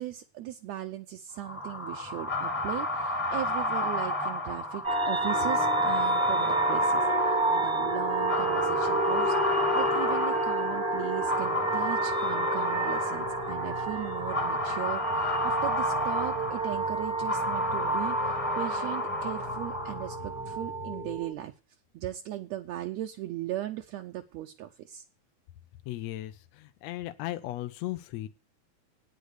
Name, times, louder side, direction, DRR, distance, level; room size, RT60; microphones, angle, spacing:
voice 1, 0.0-21.5 21.9-25.0, right 13 dB, 75° right, 4 dB, 1.8 m, -38 dB
sound 1, 1.4-20.3, left 1 dB, 5° left, 0.9 m, -32 dB
sound 2, 4.8-21.3, right 2 dB, 30° right, 1.0 m, -30 dB
sound 3, 13.2-21.2, left 5 dB, 35° left, 0.7 m, -46 dB
voice 2, 25.9-28.3, left 15 dB, 75° left, 9 dB, 1.7 m, -36 dB
9.2 x 6.6 x 8.0 m, 0.33 s
omnidirectional pair, 3.4 m